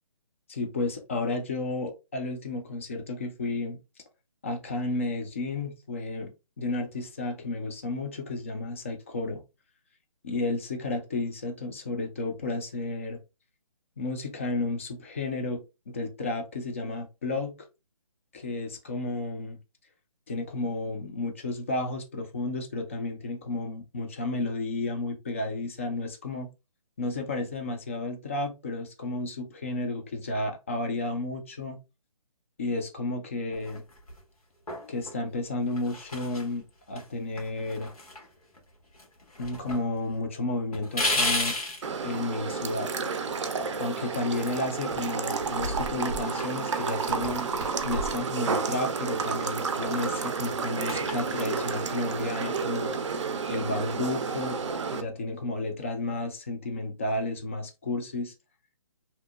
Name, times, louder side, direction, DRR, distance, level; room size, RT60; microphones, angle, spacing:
voice 1, 0.5-3.8 4.4-6.3 6.6-9.4 10.2-13.2 14.0-17.5 18.3-19.6 20.3-26.5 27.0-31.8 32.6-33.8 34.9-37.9 39.4-41.6 42.0-42.9 43.8-47.5 47.8-52.9 53.5-54.6 54.9-58.3, left 2 dB, 25° left, 0.3 m, -32 dB
sound 1, 33.5-34.2 34.7-35.2 35.7-36.5 37.0-37.1 37.4-38.7 38.9-39.8 40.1-40.2 40.7-41.8 43.7-45.1 45.4-48.9 49.3-51.9, left 1 dB, 90° left, 1.2 m, -35 dB
sound 2, 41.8-55.0, right 5 dB, 55° right, 0.4 m, -31 dB
2.7 x 2.1 x 2.2 m
figure-of-eight pair, 150°, 18 cm